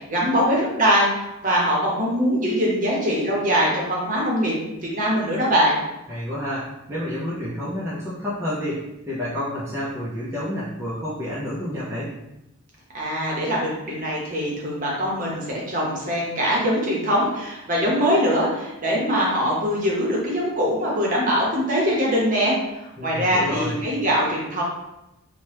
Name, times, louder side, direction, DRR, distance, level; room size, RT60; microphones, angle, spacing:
voice 1, 0.0-4.6 4.9-5.8 12.9-24.6, equal, 35° right, -4 dB, 0.8 m, -22 dB
voice 2, 6.1-12.1 23.0-23.8, left 1 dB, 10° right, -9 dB, 0.4 m, -29 dB
2.9 x 2.1 x 3.2 m, 0.91 s
head